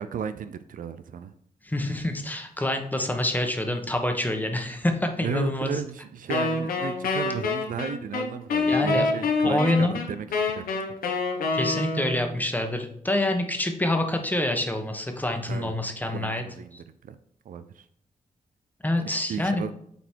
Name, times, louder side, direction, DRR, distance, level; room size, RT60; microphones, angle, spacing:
voice 1, 0.0-1.3 5.2-10.3 10.5-10.7 15.5-15.7 16.1-16.8 17.0-17.2 17.5-17.8 19.0-19.8, right 7 dB, 70° right, 12 dB, 0.5 m, -34 dB
voice 2, 1.6-5.8 8.7-9.1 9.4-10.0 11.5-16.4 18.8-19.6, left 1 dB, 10° left, 5 dB, 1.3 m, -26 dB
Wind instrument woodwind instrument, 6.3-12.3, left 3 dB, 90° left, 1.3 m, -26 dB
8.0 x 4.2 x 4.6 m, 0.68 s
cardioid pair, 65°, 14 cm